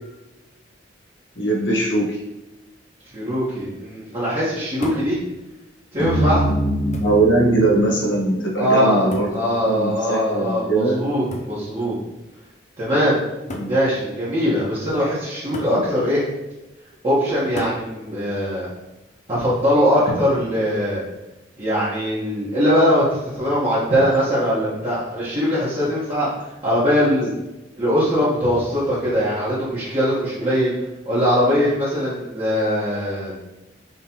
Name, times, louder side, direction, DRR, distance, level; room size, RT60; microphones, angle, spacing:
voice 1, 1.4-2.2 7.0-9.3 9.6-11.0 13.5-13.7 15.7-15.8, right 2 dB, 90° left, -3 dB, 1.3 m, -20 dB
voice 2, 3.1-5.2 5.9-6.4 8.6-12.0 12.8-13.2 13.7-16.2 17.0-18.7 19.3-21.0 21.6-26.3 26.6-27.3 27.8-30.7 31.0-33.4, equal, 30° right, -11 dB, 1.3 m, -21 dB
sound 1, 4.8-5.2 6.2-6.3 6.9-7.3 9.1-9.5 11.3-11.6 12.7-12.8 13.5-13.8 15.5-15.8 17.6-17.9 19.4-19.8, left 1 dB, 40° left, 0.5 m, -33 dB
sound 2, 6.0-10.4, equal, 5° right, 1.4 m, -25 dB
5.3 x 3.3 x 2.9 m, 1.0 s
head